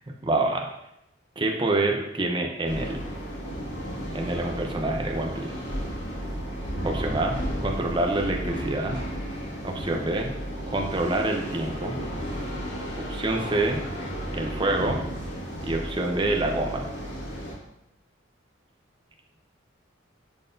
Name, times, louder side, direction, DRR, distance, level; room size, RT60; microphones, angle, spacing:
voice 1, 0.2-0.7 1.4-3.0 4.1-5.5 6.8-9.0 9.6-10.3 10.7-12.0 13.1-13.8 14.3-15.0 15.6-16.9, right 2 dB, 25° right, 2 dB, 0.7 m, -26 dB
sound 1, 2.6-17.5, equal, 65° left, 1.8 m, -33 dB
10.5 x 4.0 x 2.7 m, 0.85 s
head